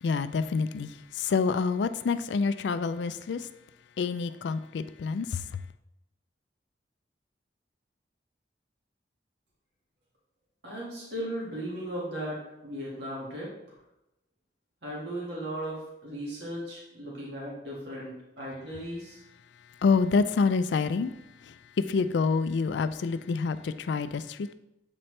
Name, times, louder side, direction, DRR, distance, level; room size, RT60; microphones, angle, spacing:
voice 1, 0.0-3.5 4.0-5.6 19.8-21.1 21.4-24.5, left 4 dB, 70° left, 0.4 m, -27 dB
voice 2, 10.6-13.5 14.8-19.2, right 1 dB, 65° right, 1.8 m, -37 dB
7.7 x 4.3 x 3.2 m
head